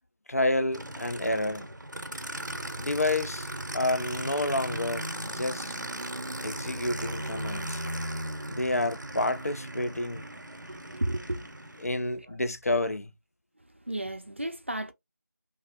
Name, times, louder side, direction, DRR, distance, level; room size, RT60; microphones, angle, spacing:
voice 1, 0.3-1.7 2.8-5.8 6.4-7.9 8.5-10.2 11.8-13.1, left 2 dB, 55° left, 0.4 m, -29 dB
Aircraft, 0.7-11.9, right 1 dB, 90° right, 0.6 m, -37 dB
voice 2, 10.7-11.8 12.2-12.4 13.6-14.9, right 1 dB, 40° right, 0.4 m, -34 dB
3.4 x 2.0 x 2.7 m
figure-of-eight pair, 170°, 10 cm